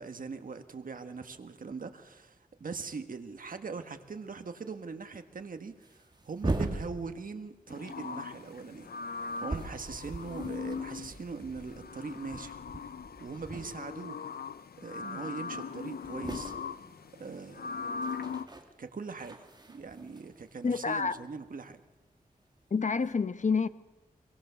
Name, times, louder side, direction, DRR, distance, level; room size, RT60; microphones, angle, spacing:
voice 1, 0.0-12.6 13.2-14.2 14.8-16.5 17.2-18.0 18.8-19.4 19.7-21.8, right 4 dB, 65° right, 8 dB, 1.5 m, -41 dB
sound 1, 4.0-4.2 4.4-4.5 5.2-5.4 5.7-7.6 7.9-14.2 14.4-14.8 15.1-15.2 15.4-21.7 22.6-23.1, right 2 dB, 30° right, 2.8 m, -41 dB
sound 2, 7.7-18.5, left 5 dB, 90° left, 0.7 m, -40 dB
voice 2, 20.6-21.2 22.7-23.7, left 5 dB, 55° left, 13 dB, 0.9 m, -28 dB
23.5 x 22.0 x 6.9 m, 1.1 s
wide cardioid pair, 95°, 15 cm